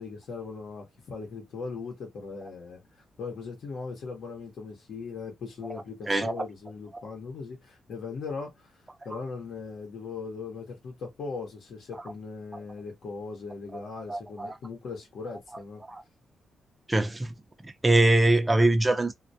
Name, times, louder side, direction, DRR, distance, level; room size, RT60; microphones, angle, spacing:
voice 1, 0.0-15.8, left 4 dB, 70° left, 0.8 m, -39 dB
voice 2, 6.1-6.4 14.1-14.5 15.9-16.0 16.9-17.3 17.8-19.1, right 2 dB, 20° right, 0.5 m, -23 dB
2.2 x 2.1 x 2.6 m
cardioid pair, 80°, 0 cm